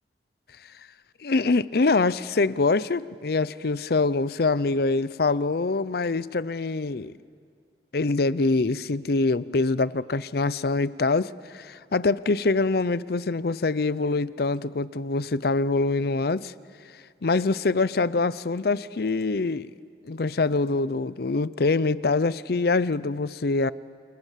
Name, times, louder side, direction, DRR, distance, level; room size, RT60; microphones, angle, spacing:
voice 1, 1.2-7.2 7.9-16.5 16.9-19.7 20.0-23.7, left 3 dB, 60° left, 17 dB, 0.6 m, -24 dB
28.5 x 28.0 x 7.5 m, 2.3 s
head